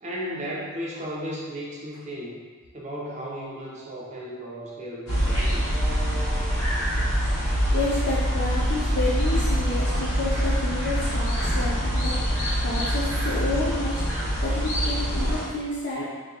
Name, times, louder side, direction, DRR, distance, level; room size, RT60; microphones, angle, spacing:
voice 1, 0.0-2.4 2.7-5.9, equal, 35° right, -4 dB, 0.7 m, -35 dB
sound 1, 5.1-15.4, equal, 80° left, 1.4 m, -25 dB
voice 2, 7.5-16.1, left 2 dB, 55° left, -7 dB, 0.5 m, -30 dB
3.3 x 3.0 x 3.8 m, 1.5 s
head